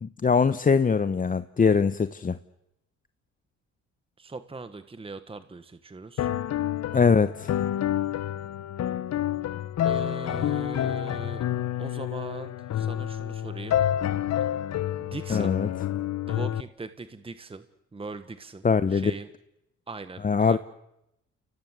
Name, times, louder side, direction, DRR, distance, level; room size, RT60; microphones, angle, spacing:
voice 1, 0.0-2.4 6.9-7.5 15.3-15.7 18.6-19.1 20.2-20.6, left 5 dB, 25° left, 12 dB, 0.8 m, -22 dB
voice 2, 4.2-6.3 9.8-11.4 11.8-13.8 15.0-15.6 16.2-17.6 17.9-18.6 18.9-19.3 19.9-20.6, right 3 dB, 20° right, 11 dB, 1.3 m, -40 dB
sound 1, 6.2-16.6, left 11 dB, 60° left, 0.9 m, -28 dB
29.0 x 18.0 x 8.1 m, 0.86 s
cardioid pair, 90°, 30 cm